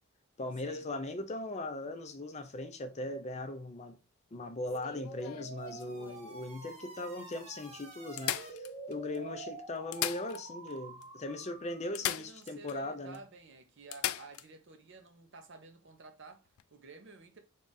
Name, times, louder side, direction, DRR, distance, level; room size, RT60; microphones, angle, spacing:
voice 1, 0.4-4.0 4.3-13.2, left 2 dB, 30° left, 0.5 m, -39 dB
sound 1, 4.7-6.3 7.0-7.1 7.3-7.4 8.2-9.2 9.8-10.8 11.0-11.1 11.9-12.8 13.1-13.2 13.9-14.5 16.5-16.6, left 13 dB, 80° left, 0.3 m, -38 dB
sound 2, 4.7-12.1, right 3 dB, 30° right, 1.0 m, -47 dB
voice 2, 11.8-17.4, right 4 dB, 55° right, 0.7 m, -53 dB
3.7 x 2.4 x 4.0 m
head